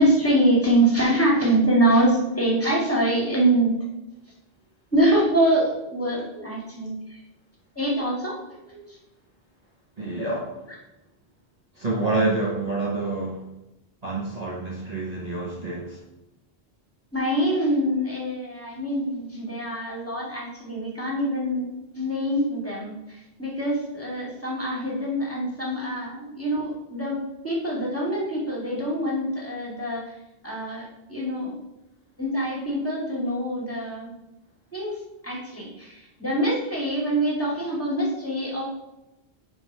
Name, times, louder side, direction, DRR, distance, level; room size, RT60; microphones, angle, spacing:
voice 1, 0.0-3.8 4.9-7.0 7.8-8.4 8.7-8.8 10.2-10.3 10.7-10.8 17.1-27.2 27.4-30.1 30.4-30.8 31.1-31.5 32.2-34.1 34.7-34.9 35.2-38.6, right 1 dB, 10° left, -5 dB, 2.4 m, -24 dB
voice 2, 10.0-10.5 11.8-13.4 14.0-16.0, right 2 dB, 40° right, -4 dB, 1.2 m, -27 dB
8.9 x 3.6 x 5.5 m, 0.93 s
omnidirectional pair, 1.1 m